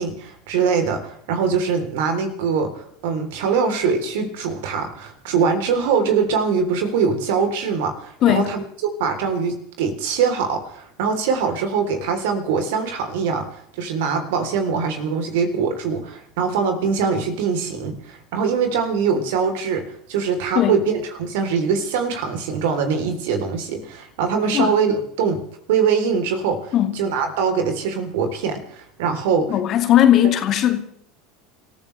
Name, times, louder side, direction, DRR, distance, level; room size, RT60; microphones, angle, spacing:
voice 1, 0.0-8.6 9.0-19.8 20.1-25.4 25.7-29.5, right 5 dB, 70° right, 3.4 m, -23 dB
voice 2, 29.5-30.8, left 11 dB, 45° left, 2.2 m, -17 dB
29.5 x 14.5 x 3.3 m
hypercardioid pair, 75°, 0 cm